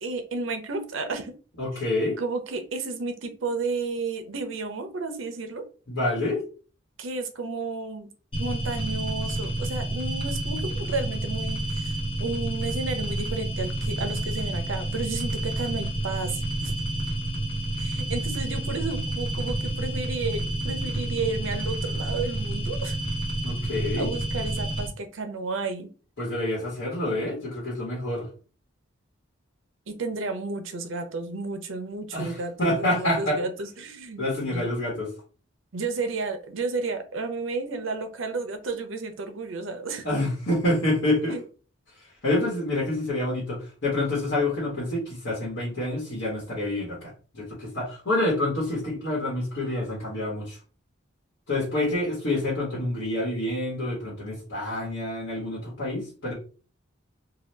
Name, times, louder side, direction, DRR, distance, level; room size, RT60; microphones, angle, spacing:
voice 1, 0.0-1.3 1.7-1.8 2.2-5.6 7.0-8.1 8.4-16.7 17.8-23.0 24.0-25.9 29.9-34.7 35.7-40.1 41.3-41.4, right 3 dB, 80° right, 0.6 m, -32 dB
voice 2, 1.6-2.2 5.9-6.4 23.4-24.1 26.2-28.3 32.1-33.4 34.2-35.1 40.0-41.4 42.2-50.6 51.5-56.3, left 1 dB, 75° left, 1.2 m, -27 dB
sound 1, 8.3-24.9, right 1 dB, 25° left, 0.8 m, -29 dB
2.8 x 2.3 x 3.3 m
head